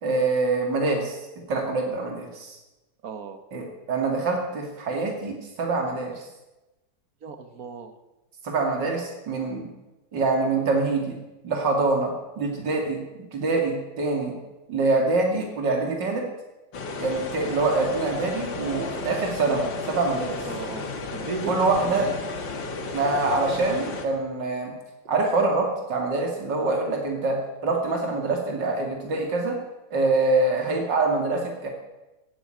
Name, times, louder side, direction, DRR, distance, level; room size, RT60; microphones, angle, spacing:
voice 1, 0.0-1.2 1.5-2.6 3.5-6.3 8.4-9.7 10.1-11.2 11.4-13.0 13.3-14.3 14.7-16.2 17.0-20.4 21.5-22.1 22.9-24.7 25.0-29.6 29.9-31.7, right 3 dB, 70° right, 1 dB, 3.2 m, -25 dB
voice 2, 3.0-3.4 7.2-7.9 20.4-22.1, right 5 dB, 50° right, 8 dB, 1.7 m, -36 dB
sound 1, 16.7-24.0, left 4 dB, 75° left, 2.3 m, -33 dB
16.0 x 8.7 x 9.1 m, 1.0 s
omnidirectional pair, 2.0 m